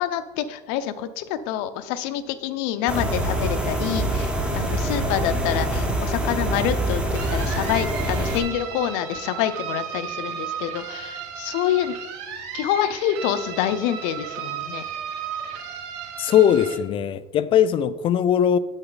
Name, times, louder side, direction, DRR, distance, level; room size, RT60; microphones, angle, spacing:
voice 1, 0.0-11.9 12.5-14.8, left 10 dB, 85° left, 0.6 m, -27 dB
sound 1, 2.9-8.4, right 1 dB, 5° right, 1.2 m, -25 dB
sound 2, 7.1-16.7, right 8 dB, 85° right, 1.8 m, -34 dB
voice 2, 16.2-18.6, left 9 dB, 40° left, 0.4 m, -19 dB
8.9 x 8.0 x 3.9 m
cardioid pair, 145°, 14 cm